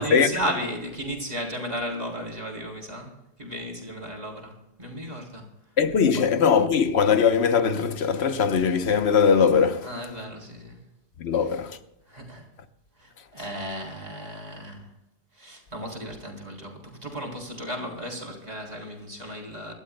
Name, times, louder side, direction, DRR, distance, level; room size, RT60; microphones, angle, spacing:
voice 1, 0.0-5.5 6.1-6.3 9.8-10.8 12.1-12.5 13.0-14.9 15.3-19.7, equal, 40° right, 3.8 m, -35 dB
voice 2, 5.8-9.9 11.2-11.8, left 6 dB, 80° left, 1.2 m, -21 dB
26.0 x 12.5 x 2.3 m
omnidirectional pair, 1.1 m